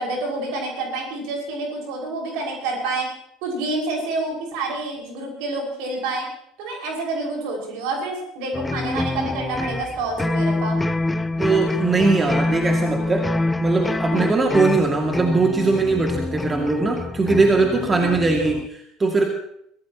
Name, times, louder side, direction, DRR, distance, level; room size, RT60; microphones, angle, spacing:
voice 1, 0.0-3.1 3.4-6.2 6.6-10.8 14.1-14.3 17.9-18.2, right 2 dB, 60° right, 0 dB, 5.7 m, -28 dB
sound 1, 8.5-18.7, left 2 dB, 15° left, 0.7 m, -25 dB
voice 2, 11.4-13.3 13.6-19.3, right 3 dB, 20° right, 2 dB, 2.4 m, -20 dB
24.5 x 16.5 x 3.0 m, 0.73 s
figure-of-eight pair, 65°, 0 cm